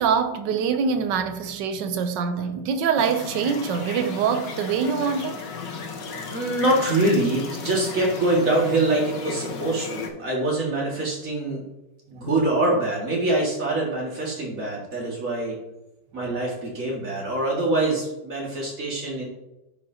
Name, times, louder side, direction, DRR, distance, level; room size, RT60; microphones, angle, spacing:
voice 1, 0.0-5.4, right 6 dB, 90° right, 9 dB, 1.3 m, -24 dB
sound 1, 3.0-10.1, left 5 dB, 85° left, 1.7 m, -35 dB
voice 2, 6.3-11.6 12.1-15.6 16.1-19.2, right 2 dB, 50° right, -3 dB, 2.3 m, -24 dB
10.5 x 5.1 x 2.8 m, 0.94 s
omnidirectional pair, 1.9 m